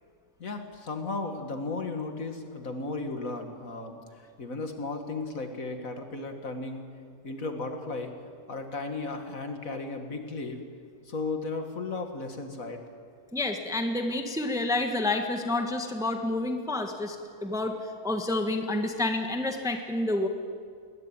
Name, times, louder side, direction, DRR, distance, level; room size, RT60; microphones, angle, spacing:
voice 1, 0.4-6.9 7.2-8.1 8.5-10.6 11.1-12.9, left 3 dB, 60° left, 5 dB, 2.3 m, -35 dB
voice 2, 13.3-17.2 17.4-20.3, left 2 dB, ahead, 5 dB, 1.3 m, -29 dB
21.0 x 19.5 x 9.0 m, 2.1 s
omnidirectional pair, 1.7 m